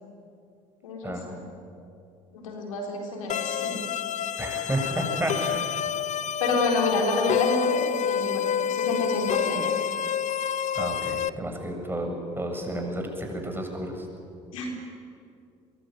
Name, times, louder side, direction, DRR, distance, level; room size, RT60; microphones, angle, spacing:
voice 1, 0.8-1.4 2.3-3.8 6.4-9.6 14.5-14.7, left 3 dB, 90° left, 1 dB, 4.2 m, -28 dB
sound 1, 3.3-11.3, left 8 dB, 45° left, 0.9 m, -28 dB
voice 2, 4.4-5.7 10.7-14.0, right 1 dB, 15° right, 3 dB, 7.5 m, -31 dB
23.5 x 22.5 x 9.4 m, 2.5 s
hypercardioid pair, 60°, 17 cm